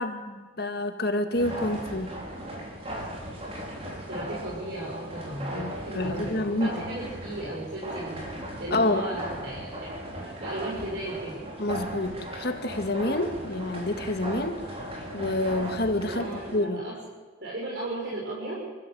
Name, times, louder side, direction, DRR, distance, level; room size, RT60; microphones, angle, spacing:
voice 1, 0.0-2.1 5.5-6.9 8.7-9.1 11.6-14.6 15.1-16.3 16.5-16.8, left 2 dB, 55° left, 6 dB, 2.0 m, -28 dB
sound 1, 1.3-16.6, right 1 dB, 30° right, 4.8 m, -37 dB
voice 2, 3.8-8.2 8.6-9.9 10.2-11.3 16.0-16.9 17.4-18.6, right 1 dB, 60° right, -6 dB, 6.6 m, -35 dB
29.5 x 15.0 x 7.9 m, 1.4 s
head